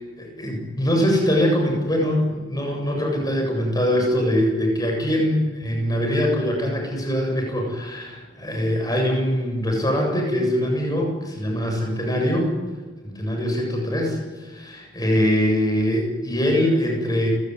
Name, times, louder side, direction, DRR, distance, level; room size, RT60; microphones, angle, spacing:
voice 1, 0.0-12.5 13.0-17.3, equal, 20° left, 1 dB, 7.7 m, -23 dB
29.5 x 17.5 x 9.7 m, 1.4 s
head